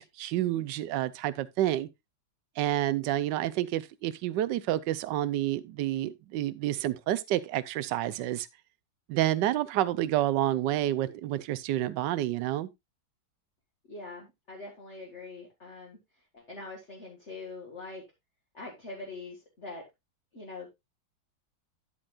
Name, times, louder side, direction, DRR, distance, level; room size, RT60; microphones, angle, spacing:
voice 1, 0.0-1.9 2.6-8.5 9.1-12.7, right 13 dB, 70° right, 1.2 m, -29 dB
voice 2, 13.9-16.0 16.3-18.0 18.5-19.8 20.3-20.7, left 3 dB, 35° left, 2.1 m, -43 dB
9.9 x 8.7 x 2.4 m
omnidirectional pair, 2.2 m